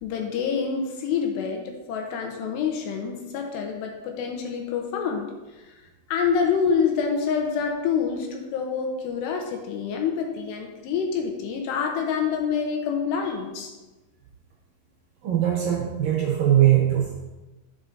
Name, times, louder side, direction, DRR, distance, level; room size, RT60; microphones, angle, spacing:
voice 1, 0.0-5.3 6.1-13.7, left 6 dB, 75° left, 2 dB, 3.0 m, -27 dB
voice 2, 15.2-17.1, right 11 dB, 70° right, -2 dB, 2.2 m, -20 dB
11.5 x 7.2 x 2.7 m, 1.1 s
omnidirectional pair, 5.2 m